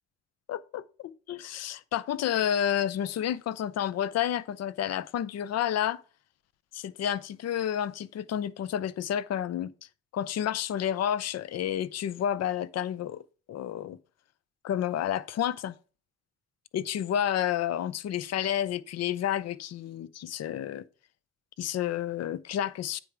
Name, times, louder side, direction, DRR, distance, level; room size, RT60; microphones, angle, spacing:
voice 1, 0.5-6.0 6.7-9.7 10.1-14.0 14.6-15.8 16.7-20.8 21.6-23.0, left 10 dB, 50° left, 0.5 m, -30 dB
8.9 x 3.4 x 4.9 m
hypercardioid pair, 50°, 33 cm